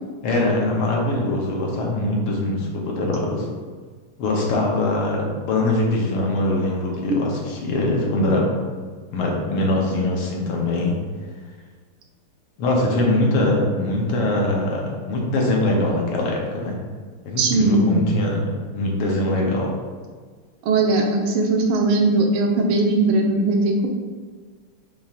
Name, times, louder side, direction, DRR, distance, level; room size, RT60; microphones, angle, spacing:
voice 1, 0.2-3.5 4.2-8.5 9.1-11.0 12.6-16.8 17.3-19.7, left 1 dB, 85° left, -1 dB, 1.8 m, -22 dB
voice 2, 17.4-18.1 20.7-23.9, right 2 dB, 90° right, 2 dB, 1.6 m, -19 dB
6.7 x 2.4 x 2.8 m, 1.6 s
omnidirectional pair, 2.3 m